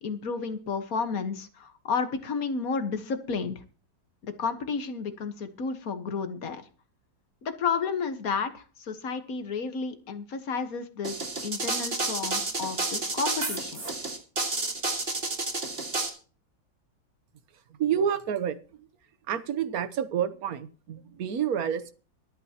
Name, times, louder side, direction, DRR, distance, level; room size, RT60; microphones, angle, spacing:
voice 1, 0.0-3.6 4.2-6.6 7.4-11.2 11.4-13.8, left 5 dB, 50° left, 1.7 m, -32 dB
sound 1, 11.0-16.1, right 3 dB, 30° right, 2.3 m, -30 dB
voice 2, 17.7-18.9 19.3-21.9, right 8 dB, 55° right, 1.4 m, -29 dB
24.5 x 9.0 x 2.9 m
omnidirectional pair, 2.0 m